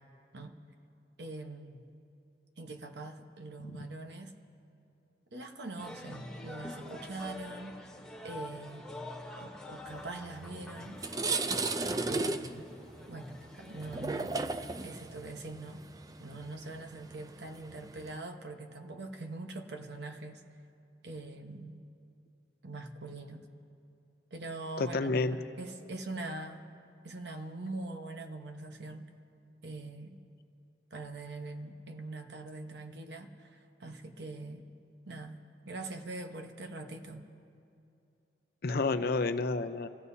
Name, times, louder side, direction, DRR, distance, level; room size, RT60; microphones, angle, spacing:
voice 1, 1.2-1.9 2.6-4.3 5.3-7.8 8.2-8.9 9.4-11.0 12.1-12.6 13.1-14.4 14.8-15.8 16.2-20.4 21.0-21.8 22.6-23.4 24.3-26.6 27.0-29.1 29.6-30.2 30.9-34.7 35.0-35.4 35.6-37.2, right 2 dB, 65° right, 4 dB, 1.1 m, -43 dB
sound 1, 5.8-14.1, left 1 dB, 5° left, 1.0 m, -46 dB
sound 2, 10.4-10.5 10.8-18.2, right 3 dB, 20° right, 0.4 m, -35 dB
voice 2, 24.8-25.4 38.6-39.9, left 3 dB, 55° left, 9 dB, 0.6 m, -30 dB
28.5 x 15.5 x 2.8 m, 2.7 s
head